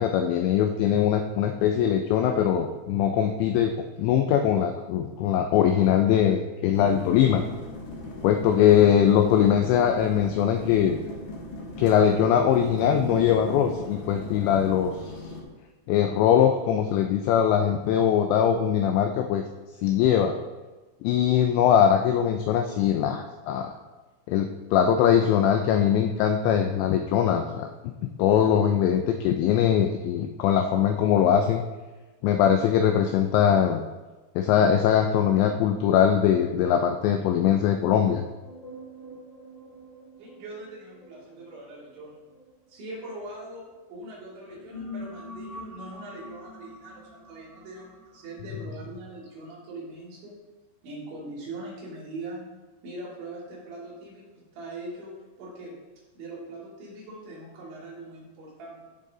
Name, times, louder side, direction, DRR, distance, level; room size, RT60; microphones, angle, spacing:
voice 1, 0.0-3.7 4.0-7.4 8.2-11.0 11.8-15.1 15.9-19.4 19.8-20.3 21.0-23.7 24.3-27.7 28.2-31.6 32.2-33.8 34.4-38.3, left 9 dB, 85° left, 5 dB, 2.6 m, -21 dB
sound 1, 6.7-15.4, left 2 dB, 60° left, 2.1 m, -38 dB
sound 2, 38.4-43.7 44.3-49.3, left 1 dB, 40° right, 1.8 m, -45 dB
voice 2, 40.2-42.2 42.7-50.4 50.8-52.5 52.8-54.3 54.5-55.7 56.2-58.8, right 2 dB, 65° right, -6 dB, 5.2 m, -41 dB
15.0 x 6.6 x 3.8 m, 1.2 s
omnidirectional pair, 5.7 m